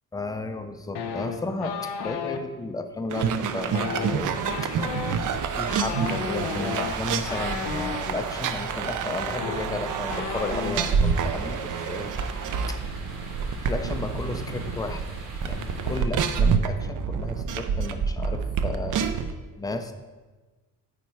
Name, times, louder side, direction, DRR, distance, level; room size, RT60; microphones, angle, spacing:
voice 1, 0.1-4.4 4.6-4.8 5.6-12.1 12.7-12.8 13.7-15.0 15.4-19.0 19.6-19.9, left 2 dB, 10° left, 7 dB, 0.4 m, -33 dB
sound 1, 0.9-2.4 3.6-8.0 9.0-9.1 9.3-11.0 11.2-11.5 11.8-12.2, left 6 dB, 80° left, 0.8 m, -33 dB
sound 2, 3.1-19.3, right 6 dB, 50° right, 0.5 m, -28 dB
sound 3, 4.2-16.0, right 2 dB, 65° right, 1.8 m, -39 dB
8.9 x 4.2 x 4.7 m, 1.3 s
cardioid pair, 160°, 40 cm